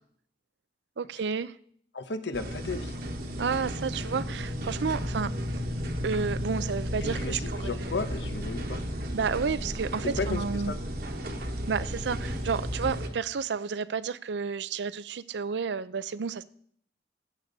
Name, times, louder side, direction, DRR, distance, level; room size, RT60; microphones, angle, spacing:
voice 1, 1.0-1.6 3.4-5.6 6.0-7.9 9.1-10.7 11.7-16.4, right 5 dB, 80° right, 0.5 m, -31 dB
voice 2, 1.9-2.9 7.0-8.8 10.0-10.8, left 3 dB, 80° left, 1.0 m, -34 dB
sound 1, 2.3-13.1, equal, 55° right, 1.3 m, -33 dB
15.5 x 8.1 x 4.0 m
head